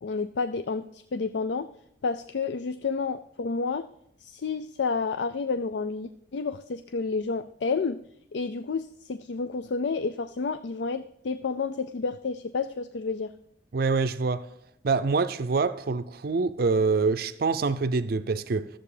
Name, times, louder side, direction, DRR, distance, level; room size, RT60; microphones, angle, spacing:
voice 1, 0.0-1.7 2.0-3.9 4.2-8.0 8.3-13.3, left 4 dB, 70° left, 0.4 m, -30 dB
voice 2, 13.7-14.5 14.8-18.7, right 4 dB, 55° right, 0.5 m, -25 dB
13.5 x 7.6 x 4.9 m
head